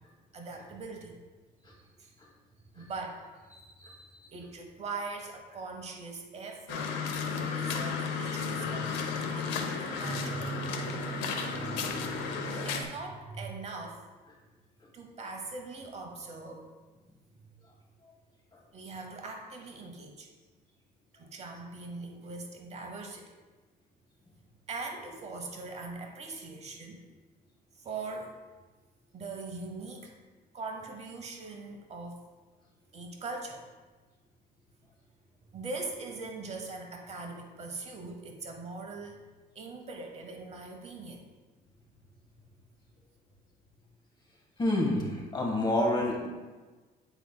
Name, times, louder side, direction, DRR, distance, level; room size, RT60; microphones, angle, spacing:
voice 1, 0.3-1.2 1.7-2.1 2.8-7.0 7.3-10.8 11.5-12.2 12.6-14.0 14.9-16.7 18.7-20.3 21.1-23.3 24.7-27.0 27.7-28.4 29.1-30.1 30.5-32.2 32.9-33.7 35.5-39.2 39.5-41.2, right 3 dB, 40° right, 3 dB, 0.8 m, -41 dB
sound 1, 6.7-12.8, left 4 dB, 90° left, 0.7 m, -33 dB
voice 2, 44.6-46.3, left 1 dB, 25° left, -1 dB, 1.6 m, -28 dB
8.9 x 4.8 x 2.2 m, 1.3 s
cardioid pair, 110°, 17 cm